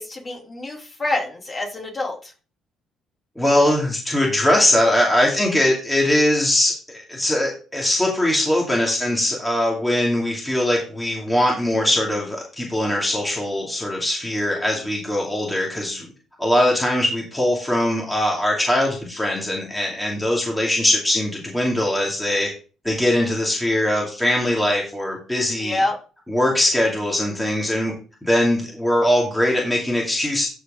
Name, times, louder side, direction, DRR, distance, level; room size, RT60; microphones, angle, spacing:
voice 1, 0.0-2.3 25.6-26.0, left 2 dB, 25° left, -1 dB, 3.1 m, -26 dB
voice 2, 3.4-16.1 16.4-22.5 22.8-25.8 26.3-27.9 28.2-30.5, left 1 dB, 5° left, -2 dB, 2.5 m, -21 dB
13.0 x 4.8 x 3.7 m, 0.37 s
cardioid pair, 105°, 0 cm